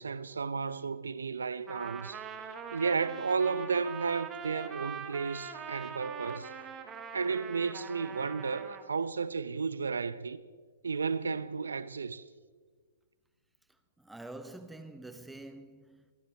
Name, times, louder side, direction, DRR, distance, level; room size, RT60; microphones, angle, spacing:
voice 1, 0.0-2.2 2.7-6.5 7.1-10.4 10.8-12.2, right 5 dB, 70° right, 0.6 m, -33 dB
Trumpet, 1.7-8.9, right 7 dB, 20° right, 1.5 m, -43 dB
voice 2, 13.7-16.1, right 2 dB, 5° right, 0.9 m, -47 dB
26.5 x 15.0 x 2.9 m
figure-of-eight pair, 120°, 0 cm